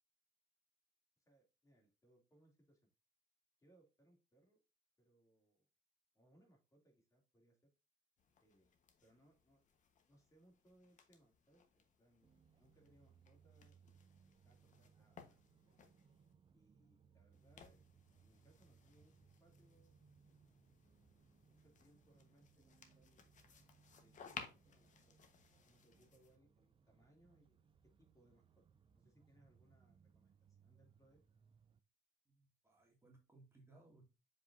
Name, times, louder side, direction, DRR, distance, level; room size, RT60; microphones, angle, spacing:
voice 1, 1.2-2.9 3.6-4.6 5.0-5.7 6.1-7.6 8.4-8.7 9.0-9.6 10.1-13.9 14.4-15.8 16.5-17.8 18.2-19.9 21.4-23.3 24.0-25.2 25.6-28.6 28.9-31.2, right 1 dB, 20° left, 1 dB, 2.9 m, -72 dB
sound 1, 8.2-16.3 17.3-26.4, left 6 dB, 45° left, 1.4 m, -60 dB
sound 2, 12.2-31.8, right 6 dB, 30° right, 0.6 m, -70 dB
voice 2, 32.3-34.0, right 2 dB, 15° right, -1 dB, 2.4 m, -65 dB
7.2 x 5.2 x 2.7 m, 0.28 s
cardioid pair, 110°, 17 cm